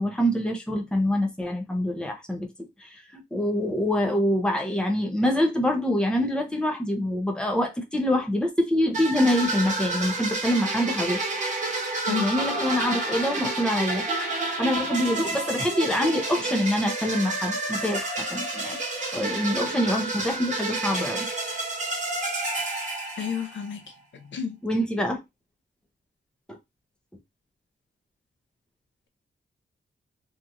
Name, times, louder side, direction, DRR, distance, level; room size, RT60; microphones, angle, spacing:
voice 1, 0.0-2.5 2.8-11.4 12.1-14.0 14.6-18.8 19.1-21.3 24.6-25.2 26.5-26.6, left 1 dB, 5° left, 0.7 m, -25 dB
sound 1, 8.9-23.7, right 2 dB, 40° right, 1.2 m, -29 dB
voice 2, 23.2-23.8 24.3-24.6, left 8 dB, 90° left, 0.6 m, -30 dB
2.9 x 2.4 x 2.6 m
wide cardioid pair, 160°, 19 cm